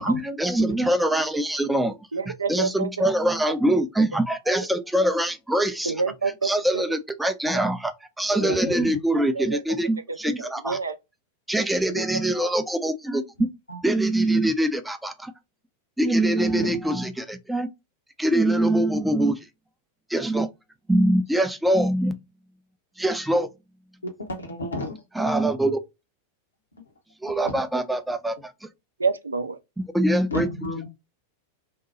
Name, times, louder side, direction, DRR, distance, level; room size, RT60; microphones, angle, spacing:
voice 1, 0.0-1.9 2.3-5.9 6.4-10.8 11.5-13.5 13.8-15.3 16.0-17.7 18.2-19.3 20.1-20.5 20.9-22.1 23.0-23.5 25.1-25.8 27.2-28.5 29.9-30.5, right 1 dB, 5° right, 0.4 m, -23 dB
voice 2, 2.1-3.1 5.9-6.8 9.4-9.6 10.4-10.9 29.0-29.6, right 4 dB, 75° right, 0.4 m, -27 dB
voice 3, 8.4-8.9 13.7-13.8 16.5-16.7 24.4-24.9 30.3-30.9, left 1 dB, 75° left, 0.9 m, -31 dB
2.7 x 2.2 x 2.4 m
figure-of-eight pair, 90°, 0 cm